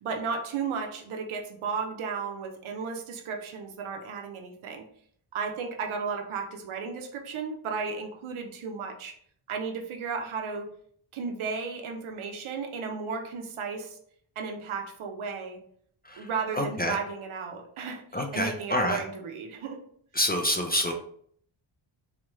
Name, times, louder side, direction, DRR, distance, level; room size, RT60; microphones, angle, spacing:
voice 1, 0.0-4.8 5.3-9.1 9.5-10.7 11.1-14.0 14.4-15.6 16.1-19.8, right 5 dB, 85° right, 3 dB, 0.8 m, -34 dB
voice 2, 16.6-17.0 18.1-19.0 20.1-20.9, left 1 dB, 20° left, 3 dB, 0.3 m, -27 dB
3.6 x 3.1 x 3.0 m, 0.62 s
wide cardioid pair, 140°, 48 cm